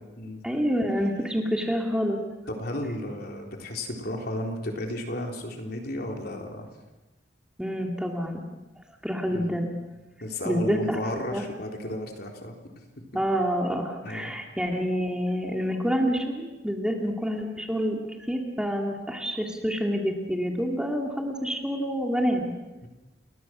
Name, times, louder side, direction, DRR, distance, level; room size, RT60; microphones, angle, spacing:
voice 1, 0.4-2.2 7.6-8.4 9.0-9.7 10.5-11.0 11.3-11.4 13.1-18.0 18.3-22.5, equal, 5° right, 1 dB, 2.3 m, -27 dB
voice 2, 2.5-6.7 9.3-9.6 10.2-12.8 14.0-14.3 22.8-22.9, left 1 dB, 55° left, 2 dB, 4.0 m, -33 dB
29.5 x 21.5 x 6.2 m, 1.1 s
head